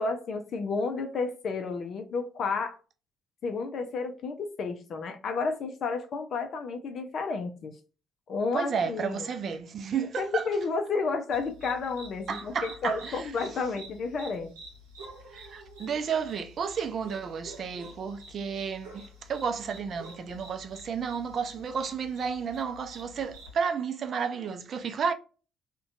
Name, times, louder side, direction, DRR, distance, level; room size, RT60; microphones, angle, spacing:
voice 1, 0.0-2.8 3.4-7.8 8.3-9.3 10.0-14.5, left 4 dB, 50° left, 0.4 m, -31 dB
voice 2, 8.5-10.4 12.3-13.2 15.3-19.0 19.3-25.1, right 6 dB, 50° right, 0.4 m, -32 dB
sound 1, 11.3-23.6, right 1 dB, 80° right, 0.8 m, -49 dB
2.5 x 2.2 x 2.4 m
figure-of-eight pair, 50°, 0 cm